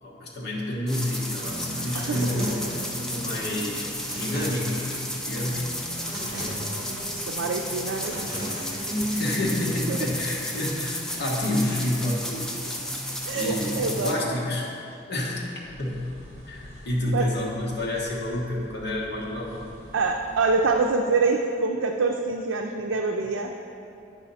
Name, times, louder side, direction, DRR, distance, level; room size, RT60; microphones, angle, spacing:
voice 1, 0.0-2.6 3.1-4.9 5.2-5.7 9.2-12.5 13.3-14.7 15.1-15.5 15.8-16.1 16.5-19.6, left 1 dB, 60° left, -4 dB, 1.4 m, -29 dB
sound 1, 0.9-14.1, equal, 5° left, 0.5 m, -33 dB
Human voice / Acoustic guitar, 1.4-9.4, equal, 20° right, 1.7 m, -35 dB
voice 2, 7.2-8.2 9.9-10.0 13.3-14.1 17.1-17.3 19.9-23.5, right 4 dB, 80° right, 1 dB, 0.5 m, -25 dB
sound 2, 15.6-20.9, equal, 40° right, 1.9 m, -47 dB
9.7 x 4.9 x 4.1 m, 2.6 s
head